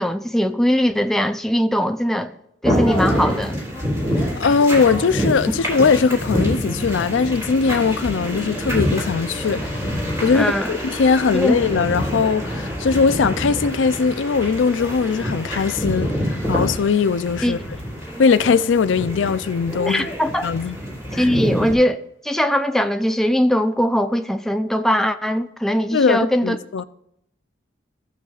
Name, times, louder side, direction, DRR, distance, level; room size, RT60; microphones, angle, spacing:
voice 1, 0.0-2.3 2.6-3.6 10.3-10.7 11.3-11.6 17.4-17.6 19.9-20.5 21.1-26.6, equal, ahead, 0.4 m, -20 dB
sound 1, 2.6-21.7, equal, 15° right, 3.5 m, -26 dB
voice 2, 4.4-9.7 10.2-17.6 18.2-20.1 20.4-20.8 21.1-21.3 25.9-26.8, left 5 dB, 85° left, 0.4 m, -20 dB
15.0 x 7.2 x 2.4 m
head